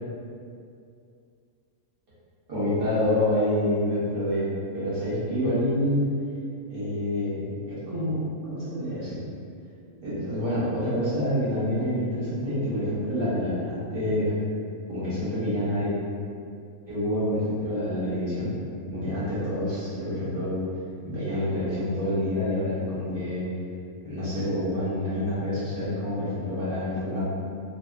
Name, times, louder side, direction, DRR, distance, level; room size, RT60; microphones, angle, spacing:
voice 1, 2.5-4.5 4.7-6.1 6.7-9.3 10.0-14.3 14.9-15.9 16.9-18.5 18.9-20.6 21.0-23.4 24.0-27.2, left 1 dB, 45° right, -11 dB, 0.9 m, -27 dB
2.4 x 2.4 x 2.3 m, 2.4 s
omnidirectional pair, 1.5 m